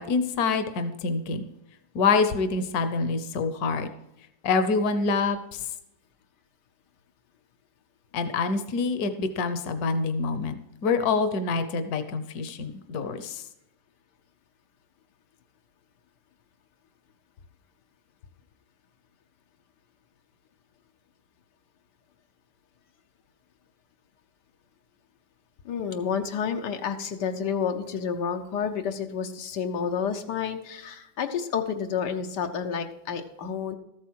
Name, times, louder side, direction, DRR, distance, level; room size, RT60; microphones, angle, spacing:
voice 1, 0.0-1.5 1.9-3.9 4.4-5.6 8.1-13.4, left 4 dB, 70° left, 10 dB, 1.4 m, -26 dB
voice 2, 25.6-33.8, left 7 dB, 90° left, 5 dB, 1.5 m, -30 dB
13.5 x 8.3 x 4.6 m, 0.88 s
omnidirectional pair, 1.7 m